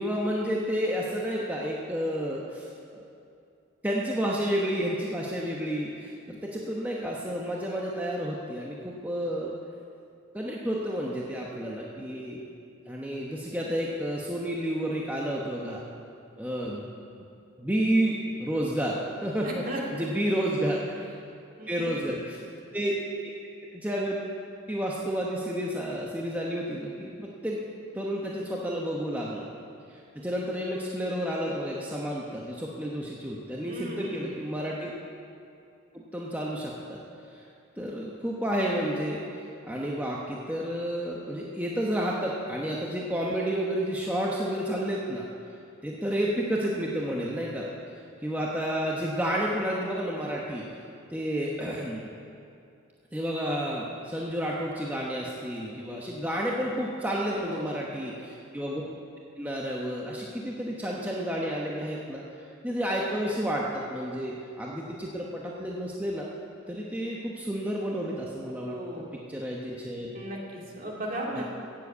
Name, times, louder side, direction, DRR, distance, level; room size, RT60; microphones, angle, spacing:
voice 1, 0.0-3.0 3.8-9.5 10.3-12.4 12.9-15.8 16.4-16.9 17.6-19.6 19.9-20.8 21.7-22.4 22.7-23.3 23.7-24.2 24.7-27.6 27.9-29.5 29.9-34.9 35.9-37.0 37.3-37.4 37.8-45.3 45.8-47.7 48.2-50.7 51.1-52.1 53.1-58.8 59.4-66.3 66.7-69.0 69.3-70.1 71.4-71.5, equal, 10° right, -4 dB, 1.0 m, -31 dB
voice 2, 19.4-20.1 21.6-22.1 33.7-34.4 57.2-57.8 68.7-69.1 70.1-71.4, right 1 dB, 40° right, -2 dB, 2.2 m, -36 dB
15.0 x 7.7 x 8.5 m, 2.5 s
head